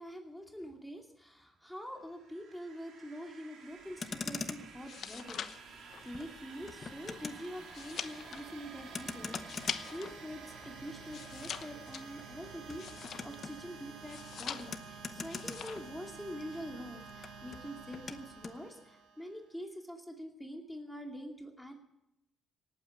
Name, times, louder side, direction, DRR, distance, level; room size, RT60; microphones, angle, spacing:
voice 1, 0.0-21.7, equal, 5° left, 2 dB, 2.5 m, -45 dB
sound 1, 1.9-19.5, right 5 dB, 75° right, 2.9 m, -51 dB
Motor vehicle (road), 3.8-16.4 16.7-18.6, left 4 dB, 40° left, 1.1 m, -45 dB
sound 2, 4.7-10.2 10.5-13.5 14.0-14.9 15.2-15.9 16.2-16.6, left 8 dB, 65° left, 1.0 m, -44 dB
18.0 x 9.0 x 8.2 m, 0.85 s
cardioid pair, 90°, 0 cm